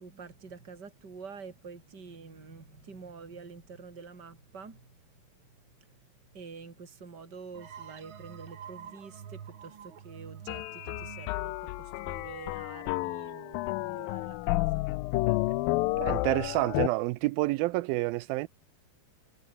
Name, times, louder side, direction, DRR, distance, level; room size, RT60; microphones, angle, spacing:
voice 1, 0.0-14.8, right 5 dB, 25° right, 4.3 m, -48 dB
sound 1, 7.5-13.0, right 8 dB, 50° right, 1.7 m, -48 dB
sound 2, 10.5-16.9, left 20 dB, 80° left, 2.3 m, -31 dB
voice 2, 16.0-18.5, right 20 dB, 85° right, 2.4 m, -28 dB
omnidirectional pair, 4.3 m